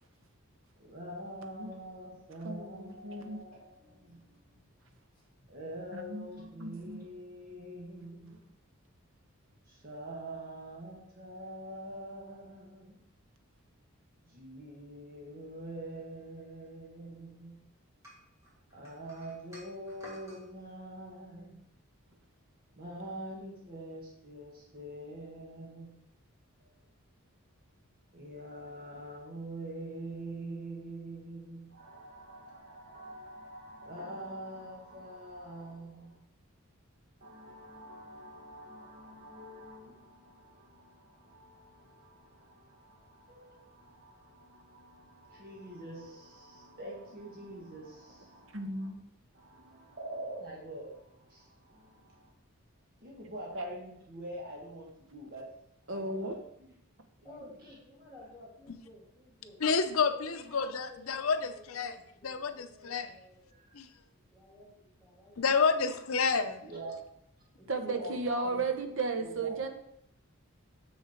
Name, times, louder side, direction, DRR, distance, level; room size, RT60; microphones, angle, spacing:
voice 1, 0.8-3.7 4.0-4.3 5.5-8.5 9.7-13.0 14.3-17.6 18.7-21.6 22.7-26.0 28.1-36.2 37.2-48.9 49.3-52.3 53.0-55.5 55.9-56.7 57.2-57.6 63.5-63.8 66.6-67.0 67.8-68.6 69.2-69.7, right 1 dB, 45° right, 1.7 m, -45 dB
voice 2, 2.4-3.4 5.9-7.1 48.5-49.0 53.5-53.6 55.9-56.3 67.7-69.7, right 3 dB, 65° right, 0.9 m, -35 dB
voice 3, 3.6-5.5 57.2-59.6 60.1-63.6 64.3-64.7 65.0-65.6 67.4-68.6, left 1 dB, 5° left, 2.3 m, -54 dB
sound 1, 18.0-20.4, equal, 15° right, 2.5 m, -53 dB
voice 4, 59.6-61.9 62.2-63.1 63.7-63.9 65.4-66.6, left 5 dB, 80° left, 0.6 m, -29 dB
6.6 x 6.5 x 4.4 m
head